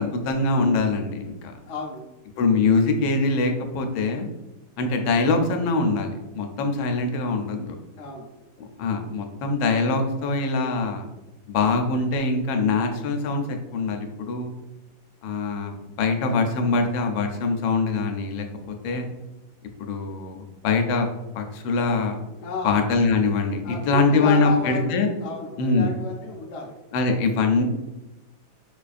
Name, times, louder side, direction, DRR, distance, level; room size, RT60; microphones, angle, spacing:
voice 1, 0.0-1.5 2.4-4.3 4.8-7.7 8.8-11.1 11.5-14.5 15.2-19.0 19.8-21.1 21.3-22.2 22.6-25.1 25.6-25.9 26.9-27.6, left 3 dB, 90° left, 4 dB, 1.4 m, -23 dB
voice 2, 1.7-2.1 8.0-8.3 22.4-22.8 23.6-26.8, left 4 dB, 75° left, 0 dB, 0.6 m, -32 dB
5.0 x 2.4 x 2.4 m, 1.0 s
omnidirectional pair, 2.1 m